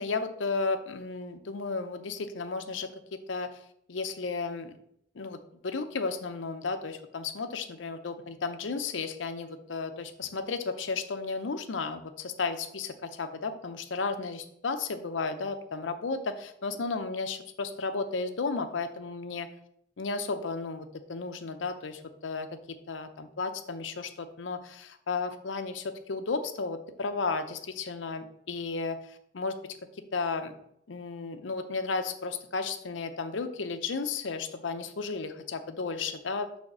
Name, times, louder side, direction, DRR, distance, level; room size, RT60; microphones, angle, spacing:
voice 1, 0.0-3.5 3.9-4.7 5.1-19.5 20.0-22.5 22.9-29.7 30.1-30.5 30.9-36.6, left 4 dB, 90° left, 8 dB, 0.6 m, -34 dB
6.5 x 3.4 x 6.0 m, 0.72 s
head